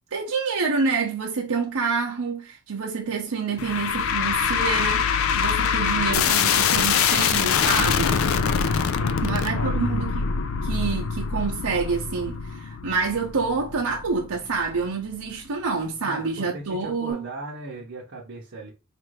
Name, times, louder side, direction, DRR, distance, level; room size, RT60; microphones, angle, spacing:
voice 1, 0.1-8.2 9.2-10.2 10.6-17.2, right 4 dB, 85° right, 0.7 m, -27 dB
sound 1, 3.6-14.9, left 7 dB, 65° left, 0.3 m, -24 dB
voice 2, 9.0-9.9 16.0-18.7, right 2 dB, 55° right, 0.8 m, -38 dB
4.4 x 2.5 x 3.1 m
head